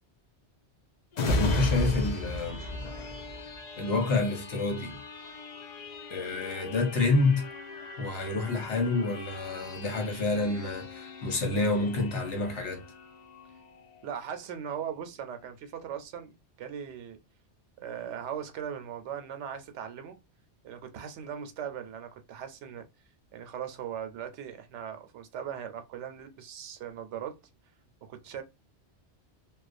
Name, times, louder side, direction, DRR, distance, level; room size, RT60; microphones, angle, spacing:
sound 1, 1.1-14.5 14.9-15.0, left 1 dB, 50° left, 0.5 m, -36 dB
voice 1, 1.3-2.6 3.8-5.0 6.1-7.5 8.0-12.9, left 3 dB, 75° left, 1.1 m, -28 dB
voice 2, 14.0-17.2 17.8-20.2 20.6-22.9 23.3-27.4 28.0-28.4, right 8 dB, 80° right, 0.9 m, -39 dB
2.3 x 2.2 x 2.5 m
omnidirectional pair, 1.2 m